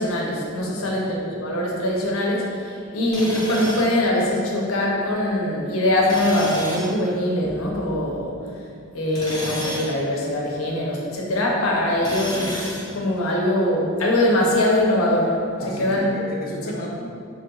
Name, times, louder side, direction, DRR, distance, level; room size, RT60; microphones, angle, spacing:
voice 1, 0.0-8.3 8.9-12.7 12.9-15.4 15.8-16.1, left 1 dB, 75° left, -2 dB, 0.7 m, -22 dB
voice 2, 0.7-1.0 15.6-17.1, left 1 dB, 45° left, -2 dB, 0.5 m, -34 dB
Tools, 3.1-4.0 6.0-6.9 9.1-10.0 12.0-12.9, equal, 20° left, 1.1 m, -31 dB
3.0 x 2.8 x 3.8 m, 2.3 s
head